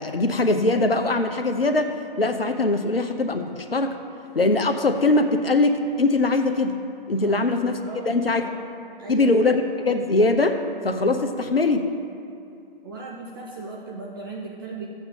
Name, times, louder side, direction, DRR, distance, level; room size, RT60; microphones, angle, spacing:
voice 1, 0.0-4.0 4.3-6.8 7.1-7.8 8.1-8.4 9.1-10.6 10.8-11.9, left 2 dB, 80° left, 6 dB, 0.9 m, -21 dB
voice 2, 7.8-8.6 9.0-9.4 12.8-14.9, right 3 dB, 25° right, -2 dB, 0.7 m, -37 dB
14.5 x 7.9 x 3.7 m, 2.5 s
figure-of-eight pair, 135°, 29 cm